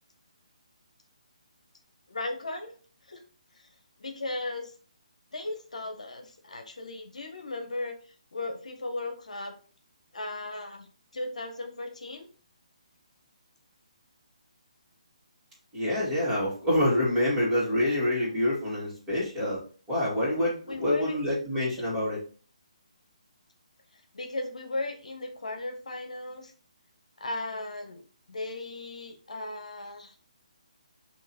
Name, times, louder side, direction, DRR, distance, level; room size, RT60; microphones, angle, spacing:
voice 1, 2.1-2.7 3.0-3.2 3.5-3.7 4.0-4.7 5.3-8.0 8.3-9.6 10.1-10.9 11.1-12.3 20.7-21.2 23.9-26.5 27.2-28.0 28.3-30.1, left 2 dB, 75° left, 5 dB, 0.9 m, -36 dB
voice 2, 15.7-19.6 19.9-22.2, left 1 dB, 15° right, -7 dB, 2.1 m, -26 dB
3.8 x 2.9 x 4.3 m, 0.40 s
figure-of-eight pair, 150°, 4 cm